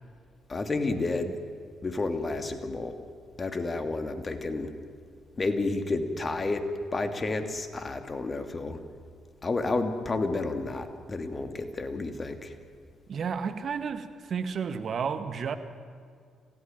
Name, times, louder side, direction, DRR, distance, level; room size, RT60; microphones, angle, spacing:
voice 1, 0.5-1.4 1.8-3.0 3.4-4.7 5.4-8.8 9.4-12.6, left 3 dB, 35° left, 7 dB, 2.8 m, -30 dB
voice 2, 13.1-15.6, right 6 dB, 55° right, 10 dB, 1.8 m, -32 dB
27.5 x 16.0 x 9.2 m, 2.2 s
hypercardioid pair, 50°, 0 cm